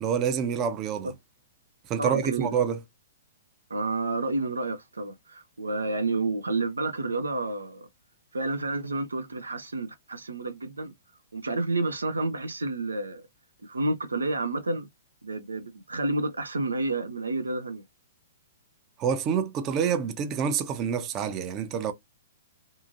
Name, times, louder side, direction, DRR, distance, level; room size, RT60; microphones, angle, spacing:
voice 1, 0.0-1.1 1.9-2.8 19.0-21.9, right 7 dB, 30° right, 0.5 m, -27 dB
voice 2, 2.0-2.6 3.7-7.9 8.3-10.9 11.3-13.3 13.6-14.9 15.2-17.8, right 2 dB, 80° right, 0.4 m, -30 dB
2.7 x 2.5 x 2.5 m
figure-of-eight pair, 115°, 0 cm